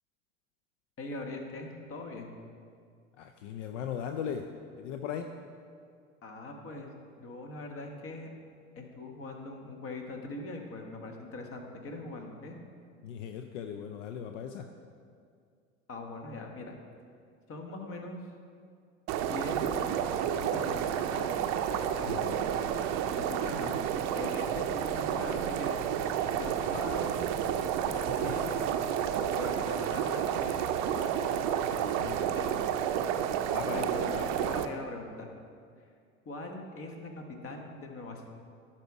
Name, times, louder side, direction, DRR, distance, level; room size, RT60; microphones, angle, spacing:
voice 1, 1.0-2.3 6.2-6.9 7.2-8.3 8.7-12.6 15.9-16.8 17.5-18.2 19.2-21.3 22.0-22.4 23.2-23.8 24.1-25.8 26.3-27.2 27.9-28.8 29.2-31.4 32.3-32.5 33.7-35.3 36.2-38.3, left 2 dB, 35° left, 3 dB, 1.3 m, -41 dB
voice 2, 3.2-4.5 4.8-5.3 13.0-14.7 22.1-22.4 27.8-28.5 32.0-32.4 33.5-33.9, left 8 dB, 65° left, 6 dB, 0.6 m, -38 dB
sound 1, 19.1-34.7, right 9 dB, 45° right, 0.6 m, -30 dB
11.5 x 4.3 x 4.7 m, 2.2 s
hypercardioid pair, 80°, 40 cm